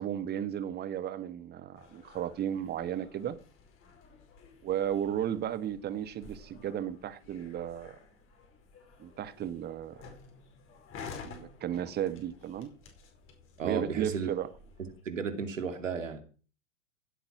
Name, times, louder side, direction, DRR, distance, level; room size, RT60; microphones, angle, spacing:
voice 1, 0.0-3.4 4.6-8.0 9.0-10.0 11.2-12.7 13.6-14.5, right 10 dB, 25° right, 1.4 m, -34 dB
sound 1, 1.7-15.0, left 5 dB, 35° left, 5.0 m, -52 dB
voice 2, 13.6-14.3 15.0-16.2, right 6 dB, 80° right, 2.6 m, -33 dB
16.0 x 8.7 x 6.0 m
hypercardioid pair, 100°, 38 cm